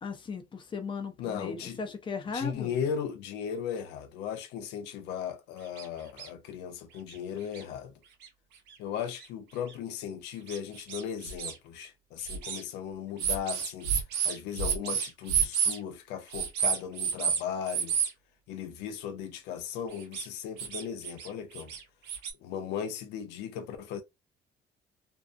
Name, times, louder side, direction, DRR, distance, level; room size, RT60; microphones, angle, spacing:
voice 1, 0.0-2.8, left 4 dB, 30° left, 0.6 m, -37 dB
voice 2, 1.2-1.8 2.3-7.9 8.8-13.9 14.2-18.0 18.5-21.7 22.4-24.0, left 8 dB, 90° left, 0.5 m, -37 dB
sound 1, 5.8-5.9 6.2-6.3 7.1-7.2 7.5-7.6 8.2-8.3 9.2-9.3 9.7-9.8 10.5-11.5 12.2-12.6 13.2-15.8 16.3-17.4 17.7-18.1 19.9-20.3 20.6-21.3 21.5-22.3, right 7 dB, 85° right, 0.7 m, -30 dB
2.7 x 2.0 x 2.4 m
cardioid pair, 110°, 17 cm